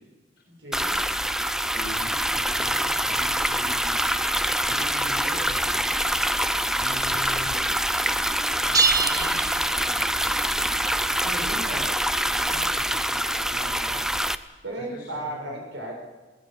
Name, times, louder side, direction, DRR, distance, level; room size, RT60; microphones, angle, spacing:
voice 1, 0.5-1.1 11.2-11.8 14.6-15.9, right 1 dB, 80° right, 0 dB, 7.3 m, -35 dB
sound 1, 0.7-14.3, right 1 dB, 5° right, 0.6 m, -25 dB
voice 2, 1.7-6.4 6.8-7.9 8.6-10.7 11.2-11.8 12.4-14.0 14.8-15.6, left 1 dB, 65° left, -4 dB, 6.4 m, -42 dB
sound 2, 8.7-10.3, right 4 dB, 20° right, 1.1 m, -25 dB
20.5 x 18.5 x 8.1 m, 1.2 s
head